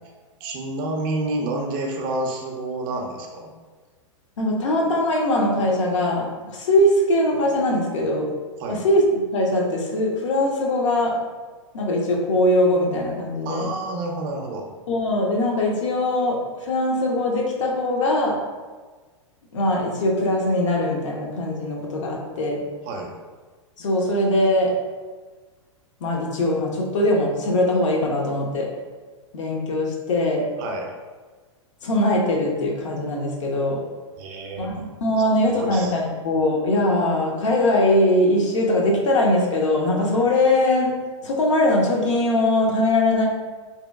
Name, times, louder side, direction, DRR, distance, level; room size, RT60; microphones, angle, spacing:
voice 1, 0.4-3.5 8.6-8.8 13.4-14.7 22.8-23.1 30.6-30.9 34.2-34.7 35.5-35.9, right 2 dB, 40° right, 1 dB, 0.5 m, -29 dB
voice 2, 4.4-8.3 8.7-9.0 9.3-11.1 11.7-13.7 14.9-18.3 19.5-22.6 23.8-24.7 26.0-28.7 29.3-30.4 31.8-33.8 34.6-40.9 41.2-43.3, left 1 dB, 70° left, -1 dB, 0.6 m, -21 dB
2.8 x 2.2 x 2.2 m, 1.4 s
hypercardioid pair, 105°, 16 cm